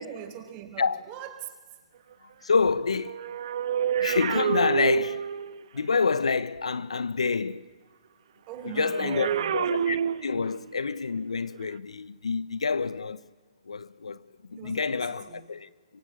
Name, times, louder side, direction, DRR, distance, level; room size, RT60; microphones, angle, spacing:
voice 1, 0.0-1.5 8.5-9.5 14.5-15.5, right 9 dB, 30° right, 4.6 m, -40 dB
voice 2, 2.4-3.2 4.0-5.3 5.7-7.7 8.8-13.2 13.7-15.7, left 4 dB, 80° left, 1.1 m, -27 dB
sound 1, 2.9-5.6 8.8-10.7 11.6-11.8, right 9 dB, 55° right, 1.2 m, -28 dB
25.0 x 23.5 x 9.9 m
hypercardioid pair, 130°, 3 cm